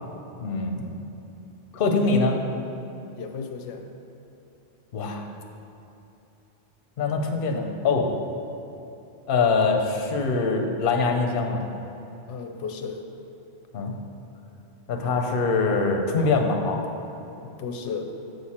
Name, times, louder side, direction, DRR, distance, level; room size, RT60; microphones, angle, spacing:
voice 1, 0.4-1.0 1.7-2.4 4.9-5.2 7.0-8.1 9.3-11.6 13.7-13.9 14.9-16.8, left 4 dB, 55° left, 3 dB, 0.8 m, -23 dB
voice 2, 3.1-3.8 12.3-13.0 17.4-18.1, left 5 dB, 85° left, 5 dB, 0.9 m, -34 dB
6.6 x 6.5 x 4.2 m, 2.9 s
omnidirectional pair, 1.2 m